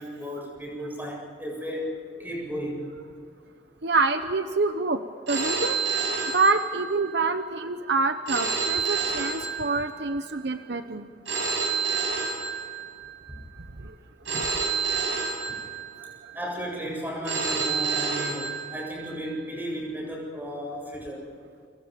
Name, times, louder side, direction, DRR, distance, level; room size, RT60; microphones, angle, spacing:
voice 1, 0.0-1.9 2.2-2.9 13.3-13.4 15.5-15.6 16.3-21.2, equal, 10° right, -1 dB, 7.8 m, -34 dB
voice 2, 3.8-5.0 5.3-5.8 6.3-11.1 14.3-14.5, right 3 dB, 65° right, 8 dB, 1.0 m, -26 dB
Telephone, 5.3-7.1 8.3-10.1 11.3-13.1 14.3-16.1 17.3-19.1, right 5 dB, 80° right, 7.6 m, -29 dB
29.5 x 26.5 x 5.4 m, 2.3 s
head